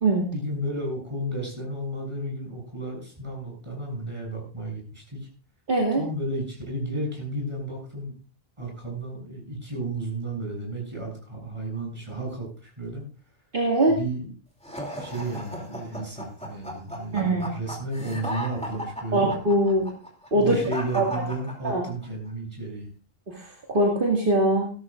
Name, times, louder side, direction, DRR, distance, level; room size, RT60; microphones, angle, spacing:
voice 1, 0.3-5.3 6.0-8.1 8.6-13.0 13.9-14.3 14.9-19.3 20.3-22.9, right 1 dB, 30° right, -2 dB, 7.1 m, -33 dB
voice 2, 5.7-6.0 13.5-14.0 17.1-17.6 19.1-19.9 20.3-20.6 20.9-21.1 21.6-21.8 23.3-24.7, right 1 dB, 60° right, -1 dB, 2.3 m, -22 dB
sound 1, 14.6-22.1, equal, 5° left, 2.7 m, -36 dB
18.0 x 13.0 x 2.5 m, 0.37 s
omnidirectional pair, 1.0 m